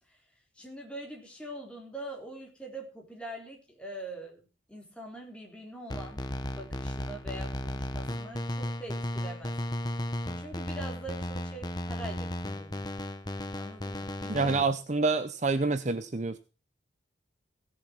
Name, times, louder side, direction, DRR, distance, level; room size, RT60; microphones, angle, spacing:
voice 1, 0.6-6.2 6.6-9.5 10.4-12.9 13.6-14.6, right 1 dB, 5° left, 0 dB, 3.9 m, -43 dB
sound 1, 5.9-14.6, left 1 dB, 20° left, 1.1 m, -35 dB
voice 2, 14.3-16.4, right 3 dB, 35° right, 11 dB, 0.7 m, -27 dB
16.5 x 7.0 x 6.2 m, 0.33 s
head